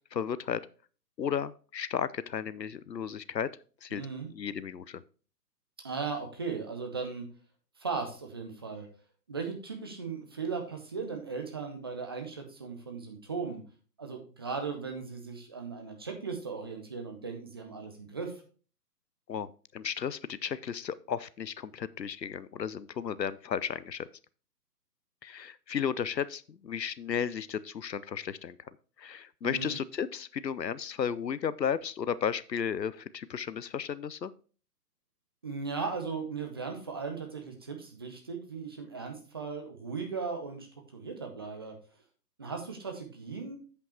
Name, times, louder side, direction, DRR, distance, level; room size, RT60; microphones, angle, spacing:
voice 1, 0.1-0.7 1.2-3.5 3.8-4.0 4.3-5.0 19.3-24.1 25.2-28.6 29.0-34.3, left 8 dB, 80° left, 17 dB, 0.7 m, -34 dB
voice 2, 3.9-4.3 5.8-7.2 7.8-8.9 9.3-13.6 14.0-18.3 29.4-29.8 35.4-40.7 40.9-41.7 42.4-43.6, right 5 dB, 15° right, 3 dB, 0.6 m, -37 dB
8.3 x 5.3 x 4.4 m, 0.39 s
figure-of-eight pair, 130°, 50 cm